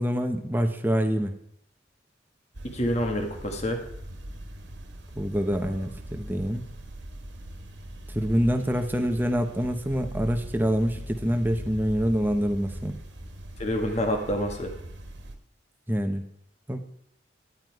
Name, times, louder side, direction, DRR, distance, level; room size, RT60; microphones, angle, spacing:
voice 1, 0.0-1.3 5.2-6.7 8.1-13.0 15.9-16.2 16.7-16.8, equal, 10° right, 5 dB, 0.9 m, -26 dB
sound 1, 2.5-15.4, right 1 dB, 75° right, 1.4 m, -41 dB
voice 2, 2.7-3.8 13.6-14.7, equal, 35° left, 4 dB, 1.6 m, -27 dB
11.5 x 9.5 x 4.7 m, 0.72 s
head